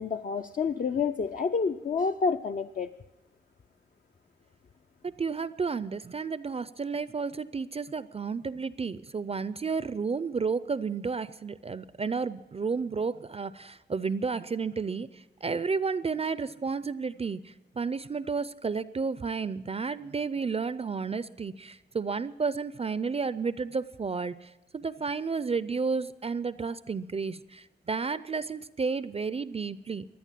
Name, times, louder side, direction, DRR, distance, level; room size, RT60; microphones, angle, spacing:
voice 1, 0.0-2.9, left 5 dB, 50° left, 6 dB, 0.5 m, -29 dB
voice 2, 5.0-30.0, right 5 dB, 35° right, 15 dB, 0.4 m, -32 dB
16.5 x 11.0 x 7.5 m, 1.0 s
wide cardioid pair, 95°, 19 cm